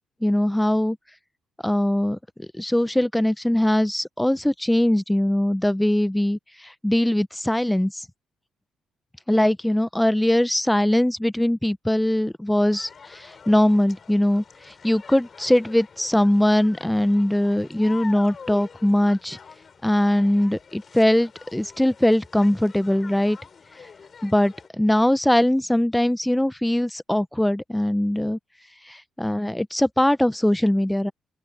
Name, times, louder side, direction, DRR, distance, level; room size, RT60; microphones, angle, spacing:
voice 1, 0.2-1.0 1.6-6.4 6.8-7.9 9.3-14.4 14.8-19.4 19.8-23.4 24.2-28.4 28.9-31.1, left 1 dB, 5° left, 1.5 m, -21 dB
sound 1, 12.7-24.7, left 6 dB, 45° left, 5.1 m, -46 dB
open air
figure-of-eight pair, 40°, 0 cm